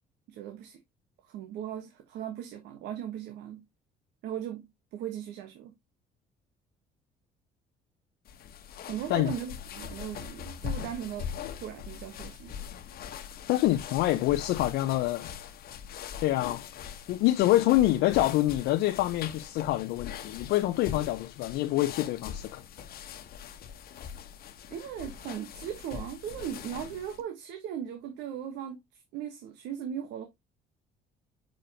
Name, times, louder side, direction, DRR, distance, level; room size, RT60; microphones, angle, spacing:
voice 1, 0.3-0.8 1.2-3.7 4.2-5.7 8.8-11.3 11.5-12.5 24.7-30.3, right 9 dB, 85° right, 1.2 m, -38 dB
sound 1, 8.3-27.2, left 8 dB, 65° left, 1.1 m, -42 dB
voice 2, 13.5-15.3 16.2-16.6 17.1-22.6, left 15 dB, 85° left, 0.6 m, -26 dB
6.9 x 5.2 x 2.8 m
cardioid pair, 110°, 17 cm